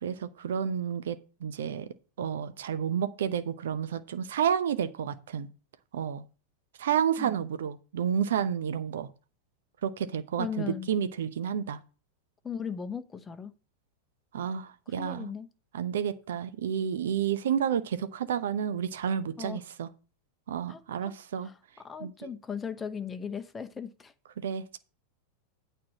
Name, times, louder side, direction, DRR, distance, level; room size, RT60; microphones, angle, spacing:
voice 1, 0.0-1.9 2.2-5.5 5.9-6.2 6.8-9.1 9.8-11.8 14.3-15.3 15.7-19.9 20.5-21.5 22.0-22.3 24.4-24.8, right 8 dB, 60° right, 0.8 m, -30 dB
voice 2, 10.4-10.9 12.4-13.5 15.0-15.5 19.4-19.6 20.7-24.1, left 6 dB, 15° left, 0.9 m, -38 dB
8.7 x 4.6 x 7.3 m
figure-of-eight pair, 90°, 0 cm